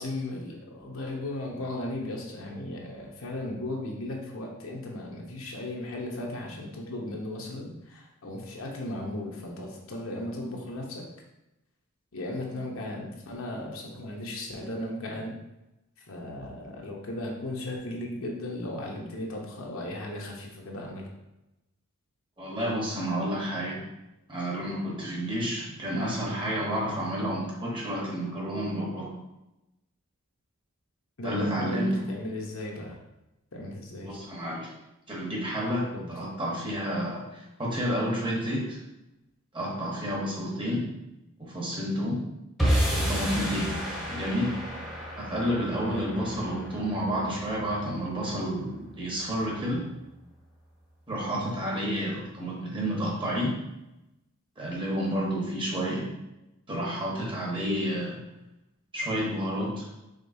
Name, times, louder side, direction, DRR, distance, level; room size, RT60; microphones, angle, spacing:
voice 1, 0.0-11.0 12.1-15.3 16.1-21.1 31.2-33.0 33.5-34.2 35.9-36.1 45.7-46.2, left 1 dB, 70° left, -1 dB, 0.9 m, -36 dB
voice 2, 22.4-23.8 24.3-29.1 31.2-31.9 34.0-34.7 35.1-38.8 39.5-40.9 41.4-42.2 42.9-43.7 44.1-44.5 45.2-49.8 51.1-53.5 54.6-56.1 56.7-58.2 58.9-59.8, equal, 25° right, -3 dB, 1.1 m, -30 dB
sound 1, 42.6-49.0, equal, ahead, 0.9 m, -31 dB
5.1 x 3.8 x 2.7 m, 0.94 s
head